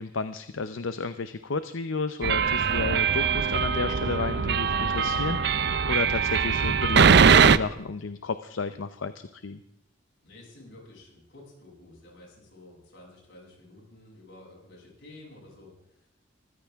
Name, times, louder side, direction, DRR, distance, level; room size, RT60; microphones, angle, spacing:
voice 1, 0.0-9.6, left 4 dB, 90° left, 11 dB, 0.7 m, -32 dB
sound 1, 2.2-7.6, right 6 dB, 60° right, 0.6 m, -21 dB
voice 2, 10.2-16.1, left 2 dB, 70° left, -2 dB, 7.9 m, -51 dB
23.5 x 15.0 x 3.6 m, 0.81 s
head